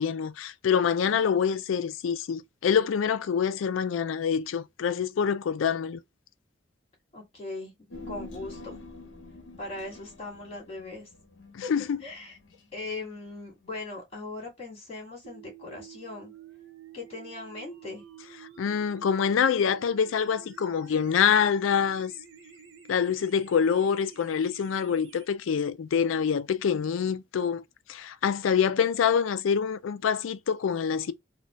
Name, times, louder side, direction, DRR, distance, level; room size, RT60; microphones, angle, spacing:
voice 1, 0.0-6.0 11.5-12.0 18.6-22.1 22.9-27.6 27.9-31.1, left 7 dB, 90° left, 0.4 m, -26 dB
voice 2, 7.1-7.7 8.1-8.8 9.6-11.1 11.6-11.7 12.0-12.4 12.7-16.3 16.9-18.0, left 3 dB, 30° left, 2.0 m, -39 dB
Human voice, 7.9-12.5 12.8-12.9, left 2 dB, 65° left, 0.8 m, -45 dB
sound 1, 15.2-25.3, right 8 dB, 90° right, 0.7 m, -50 dB
4.0 x 2.3 x 2.3 m
head